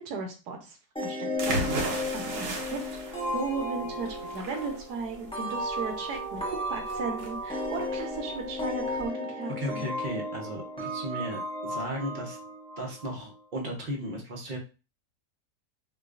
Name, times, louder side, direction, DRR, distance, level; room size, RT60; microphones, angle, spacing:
voice 1, 0.0-2.8 3.1-9.9, right 4 dB, 75° right, 3 dB, 1.4 m, -36 dB
sound 1, 1.0-13.4, left 1 dB, 5° left, 0.5 m, -34 dB
sound 2, 1.4-9.1, right 2 dB, 60° right, 1.0 m, -36 dB
voice 2, 9.6-12.4 12.8-14.6, equal, 40° right, 0 dB, 0.7 m, -35 dB
4.6 x 2.4 x 2.4 m, 0.32 s
omnidirectional pair, 1.7 m